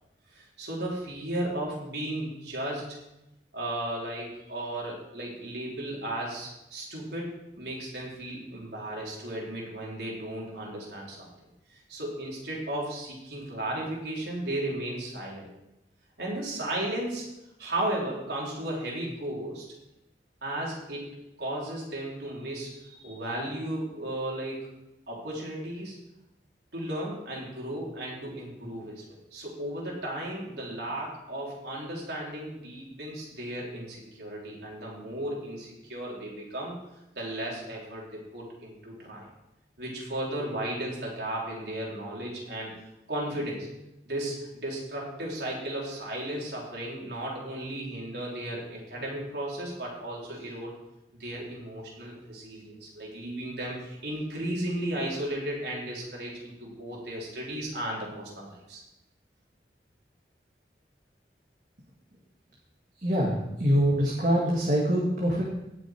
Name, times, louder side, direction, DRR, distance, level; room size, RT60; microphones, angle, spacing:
voice 1, 0.3-3.0 3.5-11.3 11.7-15.4 16.2-17.3 17.6-19.7 20.4-24.8 25.1-26.0 26.7-36.7 37.1-39.3 39.8-42.7 43.1-43.7 44.0-50.7 51.2-58.8, right 1 dB, 75° right, -3 dB, 4.1 m, -35 dB
voice 2, 63.0-63.3 63.6-65.6, equal, 45° right, -4 dB, 2.0 m, -24 dB
17.0 x 7.0 x 4.6 m, 0.91 s
head